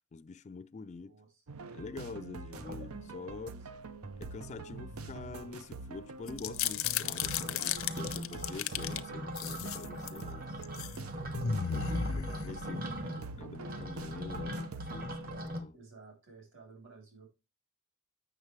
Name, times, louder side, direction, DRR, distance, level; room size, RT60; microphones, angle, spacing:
voice 1, 0.1-1.1 1.7-3.5 4.2-10.7 11.7-12.8 13.0-15.8, left 4 dB, 35° left, 0.3 m, -46 dB
voice 2, 1.0-1.4 3.3-3.6 12.5-13.2 15.7-17.3, right 3 dB, 60° right, 3.5 m, -53 dB
sound 1, 1.5-15.5, right 3 dB, 85° right, 0.7 m, -45 dB
sound 2, 2.5-3.4 3.8-3.9 4.1-4.8 5.0-15.6, equal, 45° right, 1.2 m, -41 dB
sound 3, 6.3-9.0 9.4-10.2 10.6-11.0 11.3-12.9, left 8 dB, 70° left, 0.6 m, -34 dB
8.0 x 6.4 x 3.2 m
head